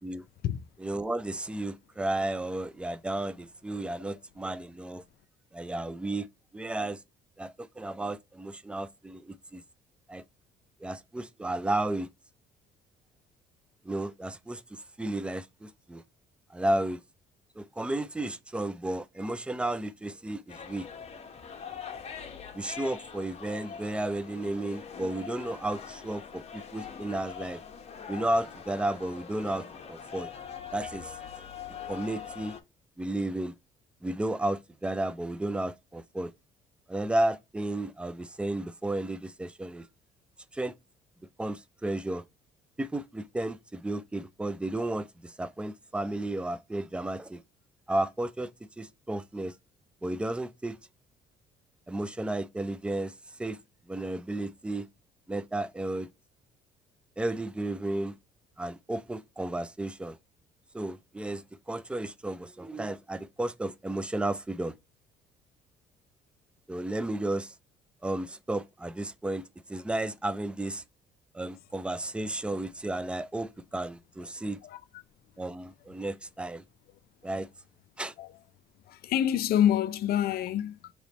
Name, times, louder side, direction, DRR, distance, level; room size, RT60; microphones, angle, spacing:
voice 1, 0.8-5.0 5.5-6.3 6.5-7.0 7.4-9.6 10.1-10.2 10.8-12.1 13.8-16.0 16.5-17.0 17.6-20.9 22.5-27.6 28.1-30.3 30.7-31.2 31.9-32.6 33.0-33.6 34.0-36.3 36.9-39.9 40.5-40.7 41.4-42.2 42.8-47.4 47.9-49.5 50.0-50.8 51.9-53.1 53.4-53.6 53.9-54.9 55.3-56.1 57.2-58.2 58.6-60.2 60.7-64.7 66.7-67.5 68.0-69.4 69.7-70.8 71.3-74.6 75.4-76.6 77.2-77.5 78.0-78.1, right 1 dB, 5° right, 0.4 m, -33 dB
sound 1, 20.5-32.6, left 7 dB, 40° left, 0.9 m, -43 dB
voice 2, 78.9-80.9, left 10 dB, 65° left, 0.5 m, -27 dB
3.2 x 3.0 x 4.0 m
cardioid pair, 110°, 17 cm